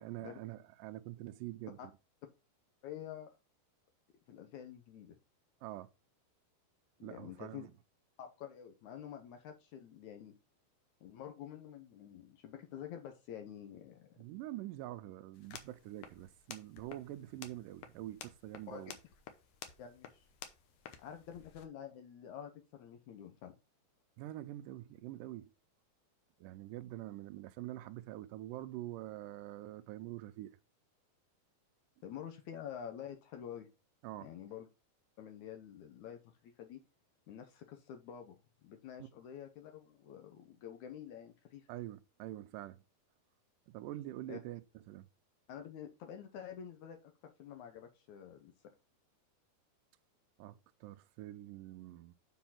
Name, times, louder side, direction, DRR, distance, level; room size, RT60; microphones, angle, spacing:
voice 1, 0.0-1.8 5.6-5.9 7.0-7.7 14.2-18.9 24.2-25.5 26.4-30.6 34.0-34.3 39.0-39.1 41.7-42.8 43.7-44.6 44.9-45.1 50.4-52.1, right 15 dB, 80° right, 2.0 m, -45 dB
voice 2, 2.8-3.3 4.3-5.2 7.0-7.7 8.2-10.3 11.0-14.2 18.7-18.8 19.8-20.2 21.0-23.5 32.0-33.7 34.2-34.7 35.2-36.8 37.3-38.4 38.6-41.6 44.3-44.4 45.5-48.5, left 9 dB, 70° left, 2.0 m, -48 dB
sound 1, 15.3-21.6, left 8 dB, 85° left, 1.4 m, -53 dB
7.1 x 4.6 x 5.7 m
omnidirectional pair, 4.3 m